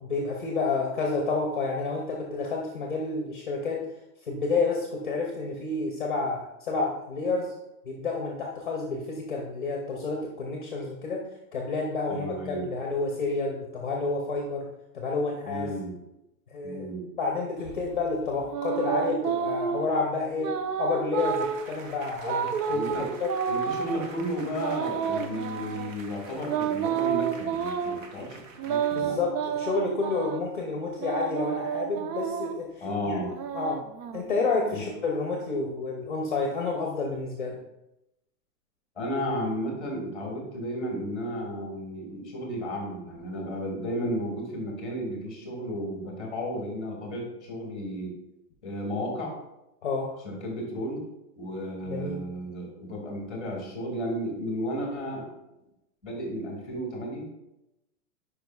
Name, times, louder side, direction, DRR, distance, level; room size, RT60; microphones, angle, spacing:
voice 1, 0.0-3.8 4.2-7.5 7.8-11.2 11.5-14.7 14.9-15.7 16.5-16.9 17.2-20.5 20.8-23.3 28.9-33.2 33.5-33.8 34.1-37.6 49.8-50.1 51.9-52.2, left 3 dB, 35° left, 1 dB, 0.6 m, -29 dB
voice 2, 12.1-12.7 15.4-16.0 16.6-17.1 22.7-23.1 23.5-28.4 28.7-29.2 32.8-33.3 34.7-34.9 38.9-48.1 48.6-49.4 50.2-51.0 51.3-55.2 56.0-57.4, equal, ahead, -1 dB, 1.1 m, -33 dB
sound 1, 17.6-19.9 20.4-21.7 22.2-24.0 24.5-25.9 26.5-28.0 28.6-30.4 31.0-32.6 33.2-34.6, right 7 dB, 85° right, 0.8 m, -30 dB
sound 2, 21.2-29.0, right 4 dB, 55° right, 0.8 m, -47 dB
9.3 x 5.1 x 2.3 m, 0.90 s
hypercardioid pair, 180°, 47 cm